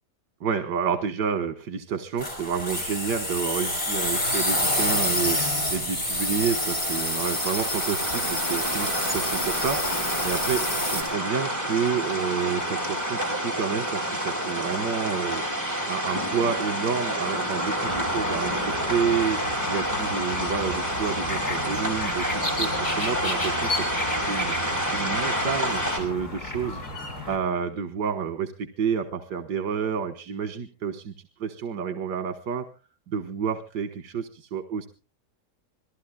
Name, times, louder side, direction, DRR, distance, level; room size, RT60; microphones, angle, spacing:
voice 1, 0.4-19.4 19.7-23.9 24.3-24.5 24.9-31.1 31.4-32.7 33.1-34.9, right 7 dB, 90° right, 7 dB, 1.8 m, -29 dB
sound 1, 2.2-11.0, left 1 dB, 35° left, 5.4 m, -27 dB
sound 2, 6.5-26.0, equal, 10° right, 5.2 m, -29 dB
sound 3, 17.9-27.4, left 1 dB, 50° left, 4.4 m, -33 dB
27.5 x 19.0 x 2.3 m, 0.36 s
omnidirectional pair, 1.8 m